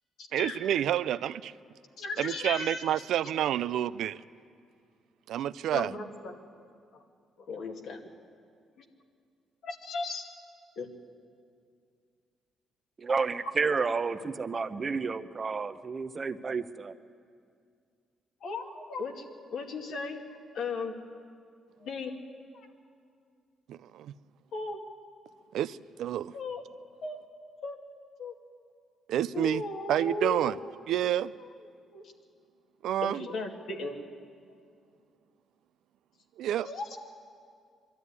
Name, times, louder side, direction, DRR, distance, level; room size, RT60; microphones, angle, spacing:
voice 1, 0.3-1.5 2.2-4.2 5.3-5.9 23.7-24.1 25.5-26.3 29.1-29.6 29.9-30.6 30.9-31.3 32.8-33.3 36.4-36.7, right 11 dB, 80° right, 15 dB, 0.4 m, -29 dB
voice 2, 2.0-2.8 5.7-6.4 7.4-8.1 8.8-8.9 9.6-10.2 10.8-10.9 18.4-19.3 19.5-20.9 21.8-22.1 22.5-22.7 24.5-24.8 26.3-26.6 27.0-27.2 27.6-27.8 28.2-28.3 29.3-30.6 31.9-32.0 33.0-34.0 36.6-37.0, left 3 dB, 70° left, 2 dB, 2.2 m, -36 dB
voice 3, 13.0-16.9, right 4 dB, 35° right, 11 dB, 0.8 m, -31 dB
23.0 x 13.0 x 9.7 m, 2.3 s
cardioid pair, 90°, 0 cm